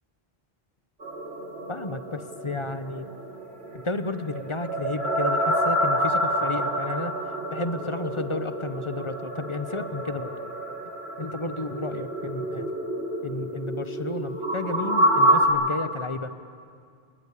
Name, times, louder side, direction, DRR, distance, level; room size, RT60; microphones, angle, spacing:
sound 1, 1.0-15.5, right 1 dB, 75° right, 3.3 m, -28 dB
voice 1, 1.7-3.1 3.7-10.3 11.2-12.7 13.2-16.3, left 2 dB, 30° left, 10 dB, 1.1 m, -32 dB
30.0 x 19.0 x 8.6 m, 2.2 s
omnidirectional pair, 1.1 m